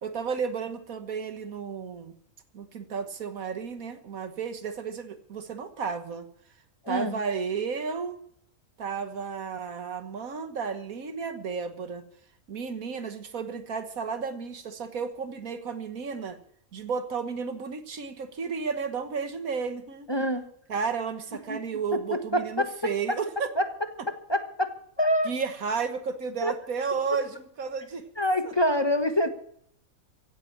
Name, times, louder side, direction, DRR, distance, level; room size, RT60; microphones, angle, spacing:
voice 1, 0.0-2.1 2.5-6.3 6.9-8.2 8.8-12.1 12.5-16.4 16.7-20.1 20.7-23.5 25.3-28.0 28.5-28.6, right 5 dB, 75° right, 9 dB, 1.8 m, -33 dB
voice 2, 6.8-7.2 20.1-20.4 21.5-21.6 21.9-22.7 23.1-23.2 23.6-23.7 24.1-25.3 26.4-26.5 28.2-29.3, equal, 20° left, 7 dB, 1.2 m, -26 dB
16.5 x 8.5 x 8.7 m, 0.66 s
omnidirectional pair, 1.5 m